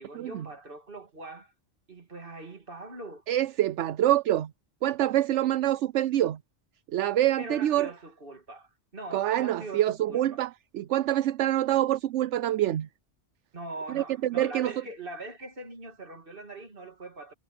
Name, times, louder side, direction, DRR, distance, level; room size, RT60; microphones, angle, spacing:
voice 1, 0.0-1.5 1.9-3.2 7.4-10.4 13.5-17.3, right 2 dB, 50° right, 2.8 m, -42 dB
voice 2, 3.3-4.5 4.8-6.4 6.9-7.9 9.1-12.9 13.9-14.0 14.3-14.7, right 13 dB, 80° right, 0.9 m, -26 dB
omnidirectional pair, 1.2 m